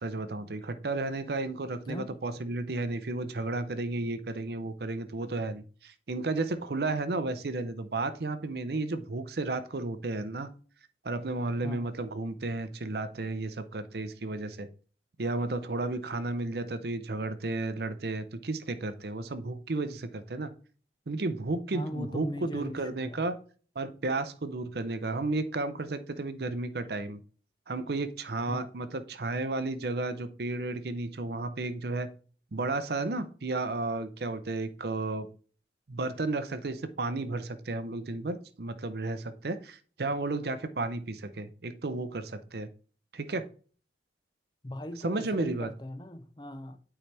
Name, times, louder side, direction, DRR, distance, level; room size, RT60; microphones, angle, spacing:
voice 1, 0.0-10.5 11.0-14.7 15.2-20.5 21.1-23.3 23.8-27.2 27.7-32.1 32.5-35.3 35.9-42.7 43.1-43.5 45.0-45.7, right 2 dB, 60° right, 0.6 m, -33 dB
voice 2, 21.7-23.3 28.5-28.7 44.6-46.8, left 1 dB, 25° left, 0.6 m, -39 dB
8.8 x 4.8 x 3.3 m
head